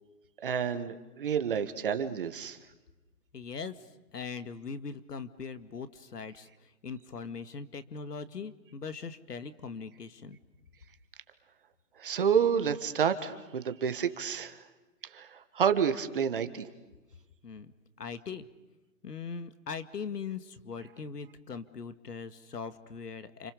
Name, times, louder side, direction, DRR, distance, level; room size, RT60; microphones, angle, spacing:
voice 1, 0.4-2.6 12.0-14.6 15.1-16.7, right 7 dB, 35° right, 9 dB, 1.6 m, -29 dB
voice 2, 3.3-3.7 4.1-6.5 6.8-10.4 17.4-17.7 18.0-18.5 19.0-23.5, left 5 dB, 85° left, 11 dB, 2.2 m, -40 dB
30.0 x 28.0 x 6.9 m, 1.1 s
hypercardioid pair, 170°, 46 cm